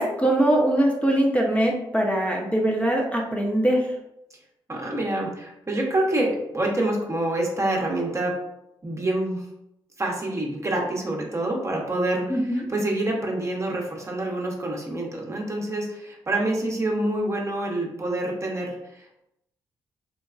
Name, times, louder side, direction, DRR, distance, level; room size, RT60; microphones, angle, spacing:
voice 1, 0.0-3.9 12.3-12.7, right 1 dB, 15° left, -1 dB, 0.7 m, -22 dB
voice 2, 4.7-8.4 8.8-9.5 10.0-19.2, right 1 dB, 30° right, 0 dB, 0.8 m, -27 dB
3.9 x 2.2 x 2.5 m, 0.84 s
supercardioid pair, 50°, 10 cm